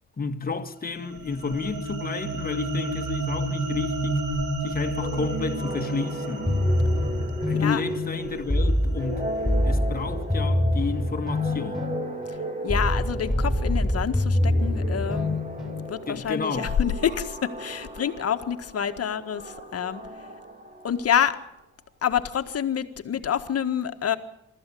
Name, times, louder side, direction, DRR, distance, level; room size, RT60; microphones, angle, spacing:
voice 1, 0.2-4.2 4.6-6.6 7.5-9.4 9.6-11.9 16.1-16.8, left 4 dB, 30° left, 1.9 m, -31 dB
sound 1, 0.9-9.3, right 1 dB, 80° right, 4.4 m, -31 dB
sound 2, 5.0-21.4, right 1 dB, 25° right, 3.0 m, -36 dB
sound 3, 6.5-16.2, left 1 dB, ahead, 6.4 m, -25 dB
voice 2, 12.6-15.4 15.9-20.0 20.8-21.4 22.0-24.2, left 8 dB, 50° left, 1.7 m, -27 dB
23.5 x 14.0 x 8.5 m
cardioid pair, 90°, 30 cm